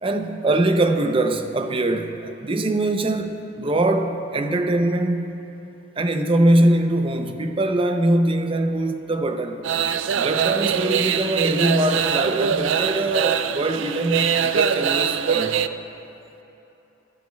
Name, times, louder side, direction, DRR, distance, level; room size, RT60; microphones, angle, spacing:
voice 1, 0.0-5.4 6.0-9.6 10.1-15.6, right 1 dB, 30° right, 0.5 m, -22 dB
sound 1, 9.6-15.7, right 8 dB, 80° right, 0.4 m, -23 dB
20.5 x 10.5 x 2.3 m
head